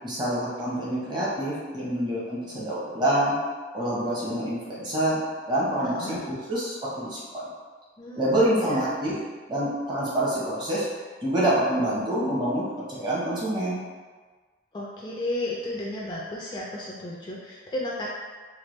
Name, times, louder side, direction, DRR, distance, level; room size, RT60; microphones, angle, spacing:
voice 1, 0.0-3.3 3.7-5.2 5.5-7.5 8.1-9.2 9.5-10.8 11.2-13.8, right 1 dB, 25° right, -7 dB, 0.8 m, -26 dB
voice 2, 5.8-6.2 8.0-8.2 8.6-8.9 14.7-18.1, left 1 dB, 25° left, -5 dB, 0.3 m, -33 dB
3.3 x 2.2 x 3.1 m, 1.4 s
head